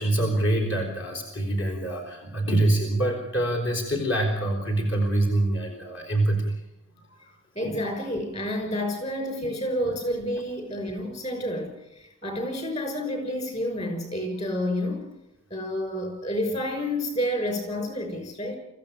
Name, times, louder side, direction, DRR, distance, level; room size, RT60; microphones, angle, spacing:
voice 1, 0.0-6.6 7.6-7.8, right 1 dB, 55° left, 2 dB, 4.2 m, -25 dB
voice 2, 7.0-15.1 15.5-18.6, left 1 dB, 30° left, 5 dB, 5.9 m, -30 dB
25.0 x 15.0 x 9.1 m, 0.86 s
head